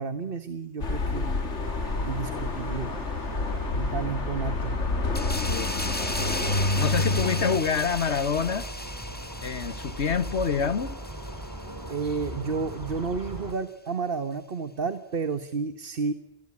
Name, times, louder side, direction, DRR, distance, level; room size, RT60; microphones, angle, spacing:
voice 1, 0.0-1.3 2.0-3.0 3.7-4.8 11.9-16.1, right 5 dB, 55° right, 1.5 m, -31 dB
sound 1, 0.8-7.6, left 3 dB, 90° left, 2.4 m, -28 dB
sound 2, 1.6-13.5, equal, 15° right, 3.7 m, -39 dB
sound 3, 5.1-12.3 12.7-12.9, left 1 dB, 10° left, 1.7 m, -37 dB
voice 2, 6.6-8.7 9.4-11.0, left 6 dB, 75° left, 1.8 m, -27 dB
28.5 x 21.0 x 9.8 m
omnidirectional pair, 1.2 m